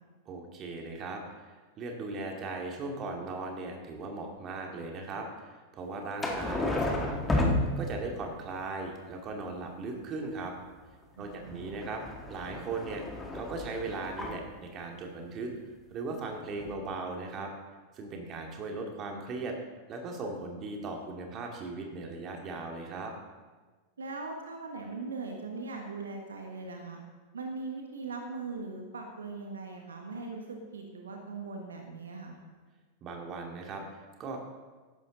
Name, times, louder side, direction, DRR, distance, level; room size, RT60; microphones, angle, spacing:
voice 1, 0.3-7.4 7.8-10.5 11.2-12.0 12.3-13.0 13.3-15.5 15.9-17.5 17.9-19.6 19.9-23.1 33.0-34.4, right 3 dB, 30° right, 2 dB, 2.2 m, -38 dB
sound 1, 6.2-8.3 11.2-14.4 16.3-16.4 16.6-16.7, left 1 dB, 10° left, 1.8 m, -32 dB
voice 2, 11.2-11.7 24.0-27.0 27.3-32.4, right 3 dB, 70° right, 2 dB, 1.4 m, -40 dB
14.5 x 11.5 x 3.9 m, 1.3 s
figure-of-eight pair, 90°, 0 cm